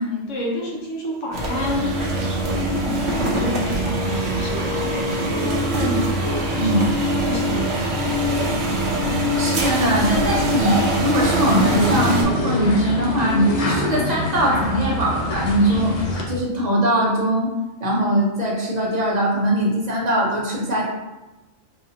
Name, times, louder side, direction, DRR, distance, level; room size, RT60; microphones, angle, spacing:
voice 1, 0.0-1.9 2.4-6.9 7.3-8.0, left 1 dB, 70° left, -2 dB, 1.2 m, -29 dB
sound 1, 1.3-12.2, right 1 dB, 65° right, 1.0 m, -22 dB
voice 2, 9.2-16.0 16.3-17.5 17.8-20.9, right 1 dB, 35° right, -3 dB, 0.9 m, -21 dB
sound 2, 11.2-16.2, left 1 dB, 40° left, 0.5 m, -25 dB
4.8 x 2.6 x 2.7 m, 1.0 s
omnidirectional pair, 1.3 m